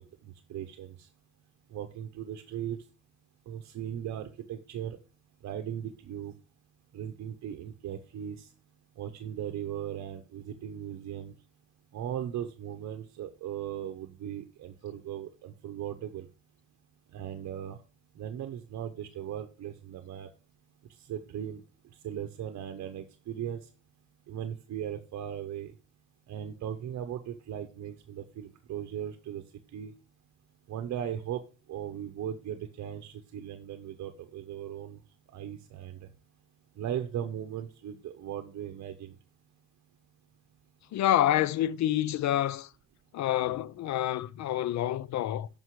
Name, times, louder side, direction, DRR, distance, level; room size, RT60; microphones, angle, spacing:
voice 1, 0.2-1.1 1.7-2.8 3.5-5.0 5.4-6.3 6.9-8.5 9.0-11.3 11.9-16.3 17.1-17.8 18.2-20.3 20.9-21.6 22.0-23.7 24.3-25.7 26.3-29.4 29.7-29.9 30.7-31.4 31.7-35.0 35.3-36.1 36.8-39.2, right 10 dB, 65° right, 0.8 m, -38 dB
voice 2, 40.9-42.7 43.1-45.5, left 12 dB, 65° left, 0.5 m, -27 dB
12.5 x 5.3 x 3.2 m
cardioid pair, 90°, 30 cm